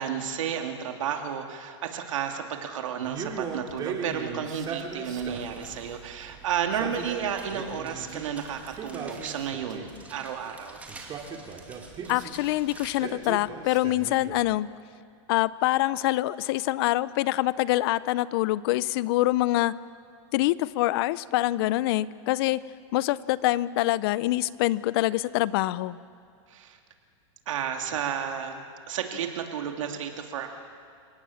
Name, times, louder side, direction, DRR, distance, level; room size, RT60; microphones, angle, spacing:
voice 1, 0.0-10.8 26.5-26.8 27.5-30.5, right 8 dB, 80° right, 4 dB, 2.7 m, -32 dB
Male speech man speaking, 3.0-5.6 6.6-8.3 8.7-10.0 10.9-12.4 13.0-14.5, right 5 dB, 25° right, 2.6 m, -37 dB
sound 1, 5.2-13.0, right 4 dB, 10° right, 2.7 m, -48 dB
voice 2, 12.1-14.7 15.3-19.7 20.3-22.6 22.9-26.0, left 17 dB, 50° left, 19 dB, 0.6 m, -25 dB
29.0 x 18.0 x 7.2 m, 2.3 s
supercardioid pair, 145°, 16 cm